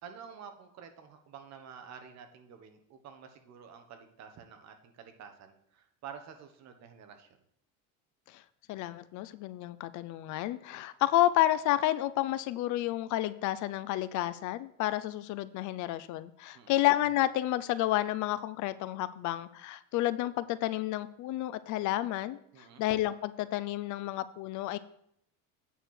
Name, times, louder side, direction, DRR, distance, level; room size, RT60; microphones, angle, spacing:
voice 1, 0.0-7.3 16.5-16.8 22.5-22.8, right 7 dB, 45° right, 6 dB, 1.2 m, -49 dB
voice 2, 8.7-22.4 22.8-24.8, left 14 dB, 50° left, 15 dB, 0.6 m, -30 dB
9.1 x 4.4 x 6.5 m, 0.72 s
cardioid pair, 140°, 37 cm